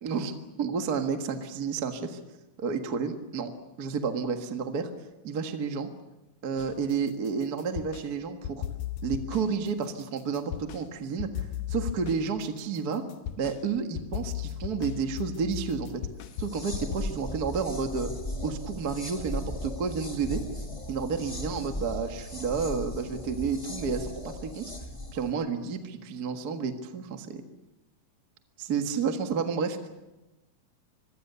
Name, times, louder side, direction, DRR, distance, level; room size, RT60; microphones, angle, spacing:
voice 1, 0.0-2.2 2.6-3.5 3.8-4.9 5.2-5.9 6.4-8.6 9.0-13.0 13.4-16.0 16.4-18.1 18.4-20.4 20.9-24.7 25.1-27.4 28.6-29.9, right 5 dB, 40° right, 6 dB, 1.4 m, -31 dB
sound 1, 6.6-8.1 8.4-10.9 11.2-17.0, left 11 dB, 85° left, 2.7 m, -36 dB
sound 2, 16.3-25.3, left 1 dB, 10° left, 1.5 m, -37 dB
26.0 x 22.5 x 6.9 m, 1.0 s
omnidirectional pair, 4.0 m